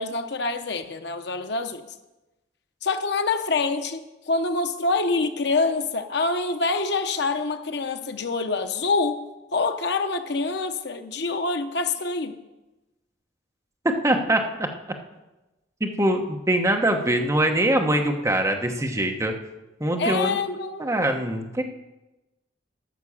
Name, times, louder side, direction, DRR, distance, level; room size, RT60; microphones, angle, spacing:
voice 1, 0.0-1.8 2.8-9.2 9.5-12.3 20.0-20.9, left 3 dB, 65° left, 7 dB, 0.9 m, -26 dB
voice 2, 14.0-14.7 15.8-19.3 19.8-20.4 20.8-21.6, right 1 dB, 15° right, 4 dB, 1.0 m, -23 dB
11.0 x 6.1 x 7.2 m, 1.0 s
head